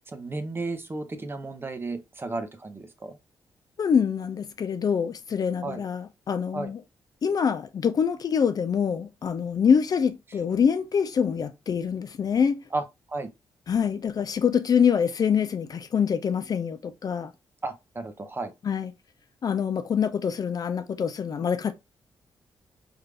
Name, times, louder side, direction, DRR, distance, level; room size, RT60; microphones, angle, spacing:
voice 1, 0.1-3.2 5.6-5.8 6.5-6.7 12.7-13.3 17.6-18.5, right 3 dB, 25° right, 0.7 m, -33 dB
voice 2, 3.8-6.8 7.2-12.6 13.7-17.3 18.7-18.9 19.4-21.7, left 7 dB, 45° left, 0.3 m, -25 dB
3.4 x 2.4 x 3.3 m
cardioid pair, 105°, 9 cm